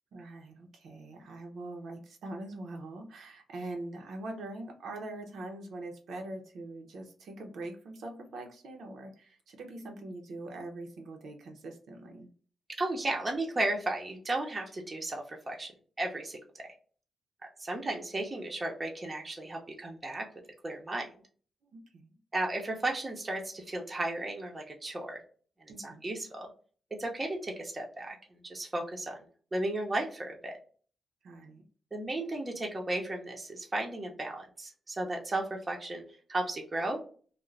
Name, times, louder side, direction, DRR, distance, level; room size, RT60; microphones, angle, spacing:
voice 1, 0.1-12.3 21.7-22.2 25.7-26.0 31.2-31.6, right 2 dB, 70° right, 2 dB, 0.7 m, -43 dB
voice 2, 12.8-15.7 16.0-16.7 17.6-20.3 20.6-21.1 22.3-25.2 25.6-26.5 27.0-29.2 29.5-30.6 31.9-36.0 36.3-37.0, right 2 dB, 25° right, 1 dB, 0.7 m, -34 dB
2.4 x 2.1 x 3.1 m, 0.42 s
cardioid pair, 100°, 0 cm